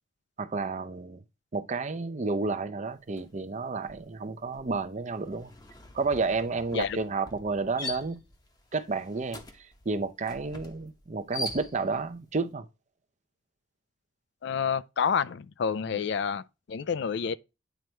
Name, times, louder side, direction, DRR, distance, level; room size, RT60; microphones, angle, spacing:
voice 1, 0.4-1.2 1.5-5.5 5.9-8.2 8.7-12.7 15.9-16.0, right 3 dB, 40° right, 0.6 m, -31 dB
sound 1, 3.1-3.4 3.7-12.1, left 2 dB, 20° left, 0.8 m, -43 dB
voice 2, 14.4-17.4, left 6 dB, 65° left, 0.4 m, -29 dB
9.2 x 3.1 x 4.5 m
head